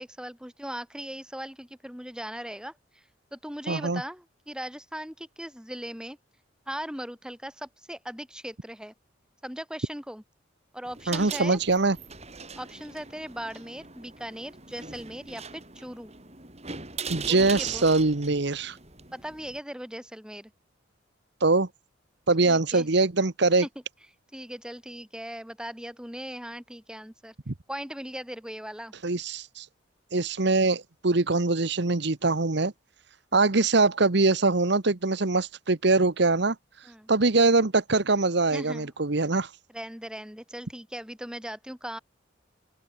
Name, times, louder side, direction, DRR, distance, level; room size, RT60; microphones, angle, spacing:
voice 1, 0.0-3.0 3.3-6.2 6.7-8.9 9.4-10.2 10.7-11.6 12.5-16.1 17.3-17.8 19.1-20.5 22.4-22.9 23.6-23.7 24.3-27.3 27.7-28.9 36.9-37.1 38.5-38.9 39.7-42.0, equal, 5° right, 4.3 m, -39 dB
voice 2, 3.7-4.0 11.1-12.0 17.1-18.8 21.4-21.7 22.3-23.7 27.5-27.6 29.0-29.7 30.1-32.7 33.3-36.5 37.1-39.5, right 3 dB, 60° right, 1.1 m, -23 dB
sound 1, 10.9-19.6, right 5 dB, 35° right, 7.0 m, -41 dB
open air
head